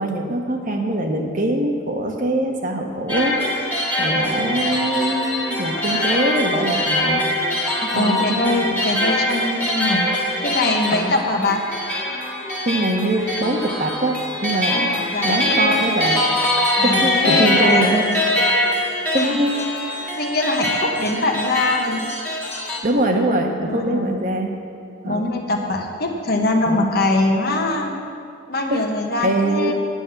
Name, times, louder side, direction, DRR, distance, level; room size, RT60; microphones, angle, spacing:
voice 1, 0.0-3.4 4.0-7.3 7.8-8.8 10.9-11.1 12.6-14.8 15.2-16.3 16.8-18.0 18.4-18.7 19.1-19.6 22.8-24.5 25.0-25.3 26.7-26.9 28.7-28.9 29.2-29.7, right 1 dB, 45° right, 2 dB, 1.2 m, -23 dB
sound 1, 3.1-22.8, left 1 dB, 10° left, 1.7 m, -23 dB
voice 2, 7.9-11.7 14.7-15.8 16.8-18.1 19.1-19.4 20.1-22.1 23.6-24.1 25.0-27.9 28.5-29.7, left 2 dB, 50° left, 2 dB, 1.3 m, -23 dB
9.5 x 9.2 x 7.1 m, 2.5 s
head